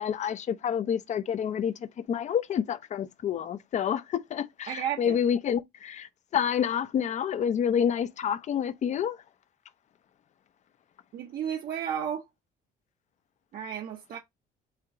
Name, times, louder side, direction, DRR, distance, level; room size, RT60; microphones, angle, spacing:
voice 1, 0.0-9.2, left 8 dB, 45° left, 0.5 m, -28 dB
voice 2, 4.7-5.2 11.1-12.2 13.5-14.2, right 9 dB, 60° right, 0.8 m, -33 dB
4.4 x 2.5 x 3.5 m
cardioid pair, 110°, 17 cm